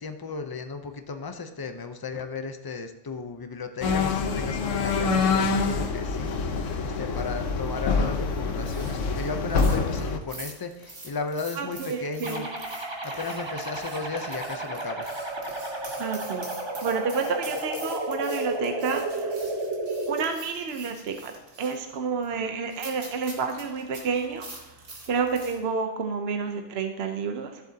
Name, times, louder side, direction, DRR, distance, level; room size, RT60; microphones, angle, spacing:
voice 1, 0.0-12.5 13.0-15.1, left 4 dB, 25° left, 7 dB, 0.5 m, -35 dB
sound 1, 3.8-10.2, left 4 dB, 80° left, 1.2 m, -26 dB
sound 2, 8.6-25.6, right 2 dB, 80° right, 2.3 m, -45 dB
voice 2, 11.6-12.5 16.0-16.5 16.8-19.3 20.1-21.3 21.6-24.7 25.1-27.6, right 5 dB, 60° right, 5 dB, 0.9 m, -30 dB
sound 3, 12.2-20.2, right 2 dB, 25° right, 1.0 m, -32 dB
14.5 x 7.7 x 2.8 m, 1.1 s
omnidirectional pair, 1.3 m